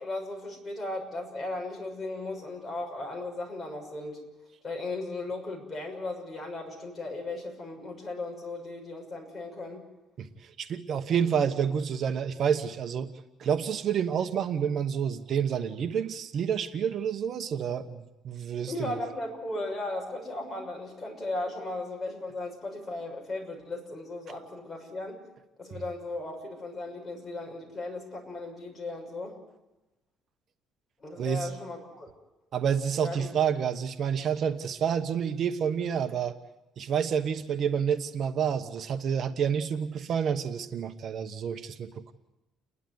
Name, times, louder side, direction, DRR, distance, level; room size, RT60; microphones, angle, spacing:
voice 1, 0.0-4.2 4.6-9.8 18.7-25.2 25.6-29.4 31.0-32.1 33.0-33.3, left 2 dB, 25° left, 0 dB, 6.3 m, -36 dB
voice 2, 10.2-13.1 13.4-19.0 25.7-25.8 31.2-31.5 32.5-36.4 36.8-42.1, right 7 dB, 50° right, 8 dB, 1.1 m, -29 dB
30.0 x 11.5 x 9.3 m, 1.0 s
cardioid pair, 125°, 0 cm